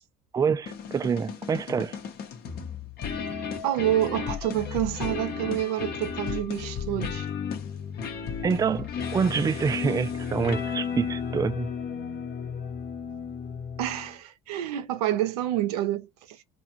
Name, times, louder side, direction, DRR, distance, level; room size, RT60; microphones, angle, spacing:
voice 1, 0.3-2.0 8.4-11.7, right 6 dB, 20° right, 0.4 m, -26 dB
sound 1, 0.7-14.1, left 6 dB, 55° left, 0.9 m, -34 dB
voice 2, 3.6-7.3 13.8-16.4, right 13 dB, 85° right, 0.6 m, -28 dB
2.4 x 2.4 x 2.8 m
hypercardioid pair, 70°, 19 cm